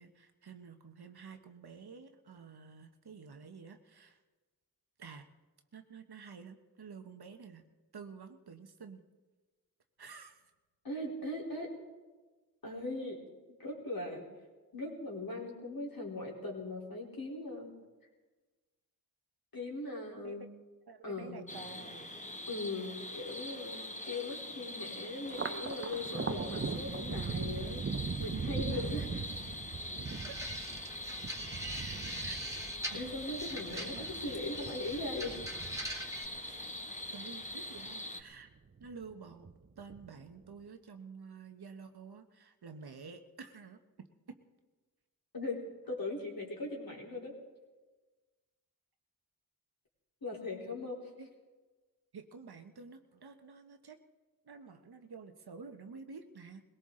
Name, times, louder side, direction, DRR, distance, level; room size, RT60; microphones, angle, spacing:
voice 1, 0.0-4.2 5.0-5.3 5.7-7.6 7.9-9.0 10.0-10.5 20.1-20.5 20.9-22.2 28.7-29.2 30.1-30.4 31.7-32.4 32.9-33.2 33.7-34.1 36.4-36.7 37.1-38.5 38.8-39.5 39.8-44.4 51.2-51.3 52.1-54.0 54.4-56.6, right 5 dB, 85° right, 7 dB, 1.1 m, -50 dB
voice 2, 10.8-11.7 12.6-13.2 13.6-14.2 14.7-17.7 19.5-20.5 21.0-21.5 22.5-27.8 28.2-29.5 32.9-35.4 45.3-47.4 50.2-51.1, left 2 dB, 65° left, -2 dB, 3.7 m, -40 dB
sound 1, 21.5-38.2, left 1 dB, 20° left, 1.1 m, -43 dB
Thunder, 25.2-37.9 38.3-39.1 39.4-40.3, right 5 dB, 35° right, 0.6 m, -40 dB
sound 2, 30.0-36.2, equal, 10° right, 2.5 m, -43 dB
21.0 x 17.5 x 3.8 m, 1.3 s
wide cardioid pair, 45°, 37 cm